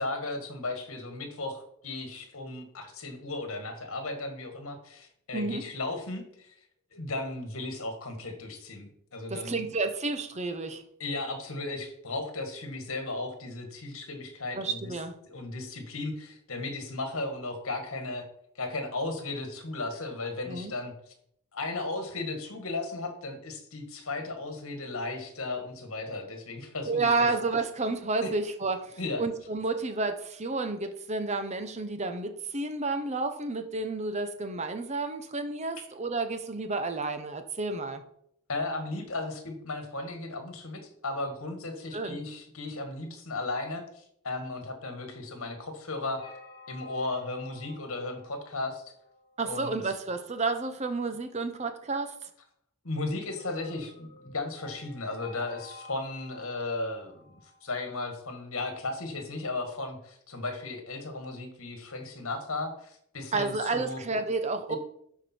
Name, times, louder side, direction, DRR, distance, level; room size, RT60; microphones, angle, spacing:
voice 1, 0.0-6.6 6.9-9.7 11.0-14.9 15.2-18.3 18.5-20.9 21.5-27.3 28.2-28.3 29.0-29.2 35.7-35.8 38.5-46.2 46.7-48.8 49.4-49.9 52.8-64.0 64.7-64.8, left 2 dB, 65° left, 6 dB, 1.7 m, -35 dB
voice 2, 5.3-5.6 9.3-10.8 14.6-15.1 20.5-20.7 26.9-38.0 41.9-42.2 49.4-52.3 63.3-64.8, right 3 dB, 30° right, 8 dB, 0.9 m, -31 dB
sound 1, 46.2-49.8 53.4-57.9, left 1 dB, 20° left, 1.3 m, -51 dB
12.0 x 4.8 x 4.4 m, 0.71 s
head